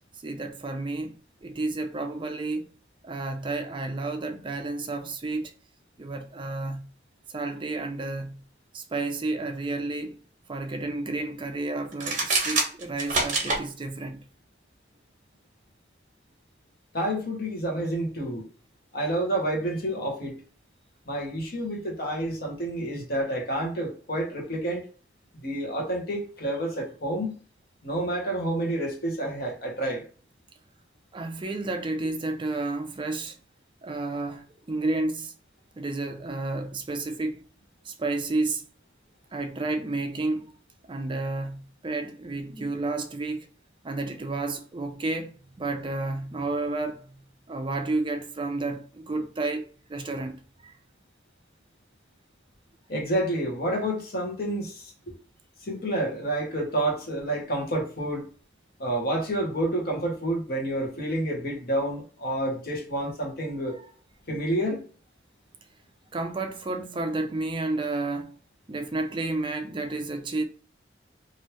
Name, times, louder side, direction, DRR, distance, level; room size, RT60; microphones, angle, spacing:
voice 1, 0.2-1.2 1.4-2.7 3.0-5.5 6.0-6.9 7.3-8.4 8.7-10.2 10.5-14.2 31.1-33.4 33.8-35.3 35.8-37.4 37.8-38.6 39.3-40.5 40.9-43.5 43.8-50.8 63.7-63.9 66.1-68.3 68.7-70.4, right 2 dB, 30° right, 0.4 m, -31 dB
sound 1, 11.9-13.6, right 3 dB, 45° right, 0.9 m, -25 dB
voice 2, 16.9-18.4 18.9-20.4 21.1-24.8 25.4-27.3 27.8-30.0 52.9-55.1 55.7-58.3 58.8-63.7 64.3-64.8, right 1 dB, 60° left, 1.1 m, -29 dB
3.0 x 2.6 x 3.1 m
head